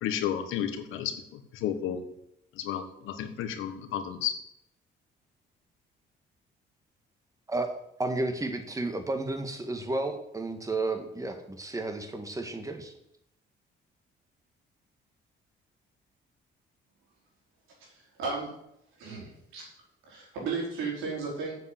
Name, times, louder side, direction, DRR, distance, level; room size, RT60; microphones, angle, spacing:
voice 1, 0.0-2.0 2.5-4.4, left 9 dB, 90° left, 8 dB, 1.3 m, -32 dB
voice 2, 8.0-12.9, right 2 dB, 15° right, 5 dB, 1.8 m, -32 dB
voice 3, 17.8-18.5 19.0-19.7 20.1-21.6, right 4 dB, 90° right, -3 dB, 4.9 m, -35 dB
8.0 x 7.7 x 7.6 m, 0.78 s
cardioid pair, 90°, 20 cm